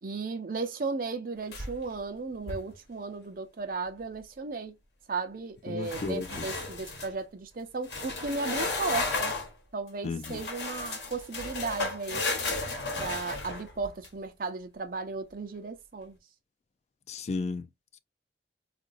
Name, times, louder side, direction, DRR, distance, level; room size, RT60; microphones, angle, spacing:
voice 1, 0.0-4.8 5.1-9.4 9.7-12.3 13.0-16.2, right 4 dB, 55° right, 0.6 m, -35 dB
sound 1, 1.5-2.0 2.3-2.7 5.8-7.1 7.8-9.5 10.2-14.1, left 3 dB, 70° left, 1.1 m, -34 dB
voice 2, 5.7-6.5 10.0-10.4 17.1-17.7, left 4 dB, 40° left, 0.3 m, -34 dB
3.8 x 2.5 x 2.4 m
head